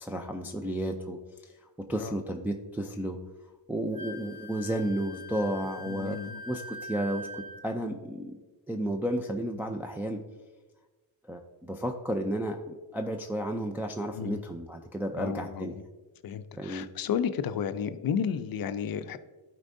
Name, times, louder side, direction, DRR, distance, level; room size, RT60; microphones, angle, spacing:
voice 1, 0.0-3.2 3.7-6.2 6.5-8.4 8.7-10.2 11.2-15.8 16.6-16.9, right 1 dB, 5° right, 2 dB, 0.4 m, -33 dB
Wind instrument woodwind instrument, 3.9-7.7, left 1 dB, 25° left, 1.1 m, -43 dB
voice 2, 5.9-6.4 14.1-14.4 15.1-15.8 16.2-19.2, left 7 dB, 50° left, 12 dB, 0.5 m, -32 dB
11.5 x 4.5 x 2.6 m, 1.2 s
cardioid pair, 90°, 45 cm